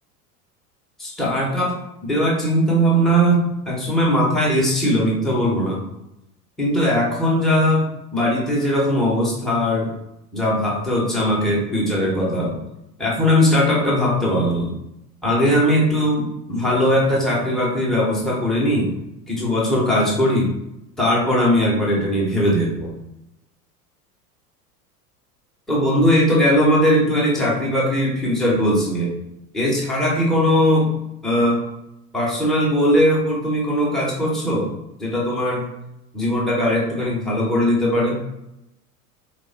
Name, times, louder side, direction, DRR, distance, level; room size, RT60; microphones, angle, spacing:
voice 1, 1.0-1.7 2.0-3.4 3.7-5.8 6.6-7.8 8.1-9.9 10.3-12.6 13.0-14.7 15.2-18.9 19.3-20.5 21.0-22.9 25.7-29.1 29.5-30.9 31.2-31.6 32.1-34.7 35.0-35.6 36.1-38.2, equal, ahead, -4 dB, 0.3 m, -19 dB
3.0 x 2.0 x 2.5 m, 0.85 s
hypercardioid pair, 85°, 47 cm